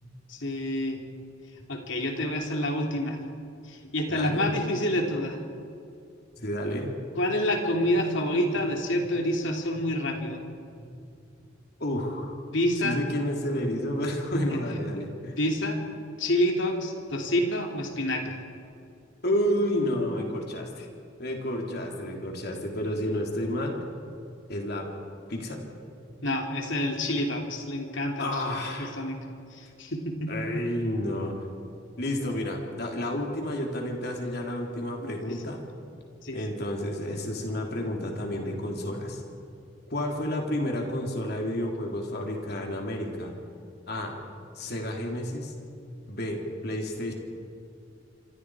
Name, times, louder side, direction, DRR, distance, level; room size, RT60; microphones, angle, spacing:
voice 1, 0.3-1.0 1.7-3.2 3.7-5.4 7.2-10.4 12.5-13.0 14.5-14.6 15.4-15.8 16.2-18.4 26.2-28.4 28.8-29.2 29.5-30.6 35.0-35.4 36.2-36.4, left 1 dB, 70° left, 2 dB, 3.1 m, -28 dB
voice 2, 4.1-4.5 6.4-6.9 10.8-10.9 11.8-12.3 12.8-15.4 19.2-20.9 21.2-23.8 24.5-24.8 25.3-25.6 28.2-29.0 30.3-31.3 32.0-35.6 36.3-39.2 39.9-43.3 43.9-44.2 44.6-45.5 46.1-47.1, left 1 dB, 55° left, 1 dB, 3.6 m, -30 dB
27.0 x 25.5 x 5.0 m, 2.5 s
head